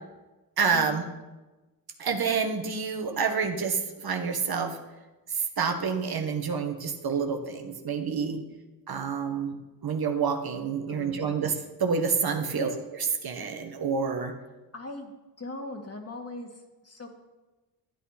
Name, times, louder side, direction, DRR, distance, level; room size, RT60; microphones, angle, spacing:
voice 1, 0.6-1.0 2.0-4.8 5.3-8.4 8.9-9.6 9.8-11.5 11.8-12.7 13.2-14.3, right 5 dB, 50° right, 4 dB, 1.5 m, -28 dB
voice 2, 10.9-11.3 12.5-12.8 14.7-15.1 15.4-17.1, left 2 dB, 30° left, 3 dB, 2.3 m, -40 dB
12.5 x 9.1 x 4.3 m, 1.1 s
supercardioid pair, 65°, 48 cm